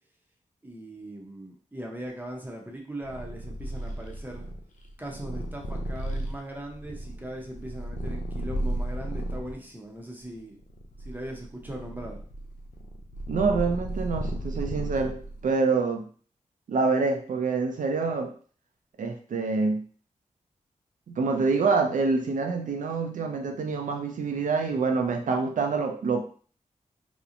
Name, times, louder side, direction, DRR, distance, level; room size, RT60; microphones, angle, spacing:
voice 1, 0.6-4.5 5.0-10.6 11.0-12.2, right 1 dB, 15° right, 0 dB, 0.6 m, -39 dB
Purr, 3.1-9.5 10.2-15.4, right 1 dB, 70° left, 0.4 m, -34 dB
voice 2, 13.3-15.2 15.4-16.0 16.7-18.3 19.0-19.8 21.1-26.2, right 4 dB, 70° right, 4 dB, 0.4 m, -26 dB
2.8 x 2.0 x 2.5 m, 0.43 s
wide cardioid pair, 70°, 14 cm